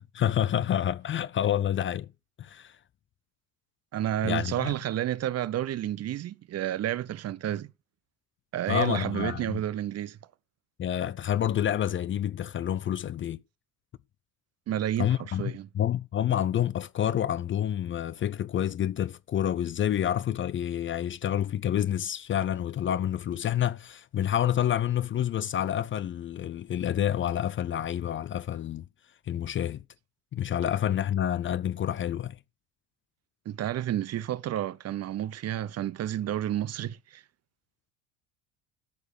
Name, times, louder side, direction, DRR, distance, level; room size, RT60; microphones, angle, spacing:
voice 1, 0.0-2.1 2.4-2.8 4.2-4.7 8.7-9.6 10.8-13.4 15.0-28.8 29.3-29.8 30.3-32.4, left 10 dB, 30° left, 0.6 m, -28 dB
voice 2, 3.9-7.7 8.5-10.2 14.7-15.7 33.4-37.2, right 12 dB, 35° right, 0.9 m, -30 dB
13.5 x 6.8 x 6.5 m
figure-of-eight pair, 65°, 41 cm